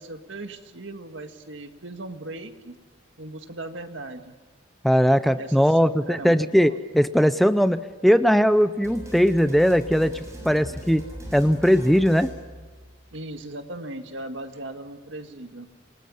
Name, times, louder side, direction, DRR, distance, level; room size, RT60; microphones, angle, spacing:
voice 1, 0.0-2.7 3.2-4.4 5.4-6.8 13.1-15.7, right 2 dB, 80° right, 6 dB, 1.9 m, -38 dB
voice 2, 4.8-11.0 11.3-12.3, equal, ahead, 11 dB, 0.6 m, -19 dB
sound 1, 8.8-13.1, equal, 15° right, 7.0 m, -40 dB
28.0 x 19.5 x 5.6 m, 1.4 s
head